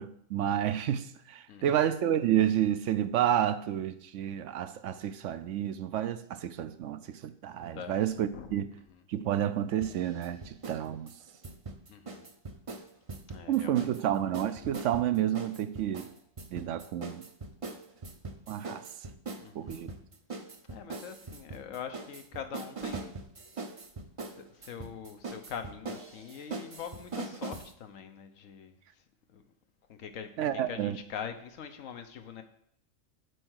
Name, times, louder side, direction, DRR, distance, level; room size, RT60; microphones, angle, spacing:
voice 1, 0.0-8.7 9.1-11.1 13.5-16.1 16.5-17.2 18.5-18.8 19.5-19.9 30.4-31.0, right 11 dB, 75° right, 0.9 m, -30 dB
voice 2, 1.5-1.8 7.6-8.0 8.3-8.6 8.9-9.0 11.9-12.3 13.3-13.9 19.4-19.8 20.7-23.2 24.4-28.8 29.3-29.4 29.9-32.4, left 7 dB, 85° left, 1.2 m, -43 dB
sound 1, 9.8-10.8 11.1-14.0 14.3-27.7, right 3 dB, 35° right, 0.6 m, -41 dB
7.8 x 4.5 x 6.3 m
omnidirectional pair, 1.3 m